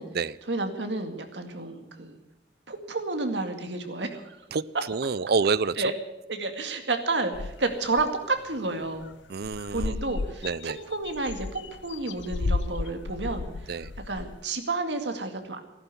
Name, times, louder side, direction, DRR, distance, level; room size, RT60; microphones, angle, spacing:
voice 1, 0.5-2.2 2.7-4.4 5.8-5.9 6.3-9.1 9.7-13.8 14.1-15.6, right 3 dB, 75° right, 6 dB, 2.2 m, -30 dB
voice 2, 4.5-5.8 9.3-10.0 10.4-10.8 13.7-13.9, right 5 dB, 60° right, 19 dB, 0.5 m, -27 dB
sound 1, 7.3-8.1 8.5-8.6 8.9-9.1 9.4-14.4, left 3 dB, 85° left, 0.6 m, -33 dB
15.0 x 11.5 x 8.3 m, 0.99 s
head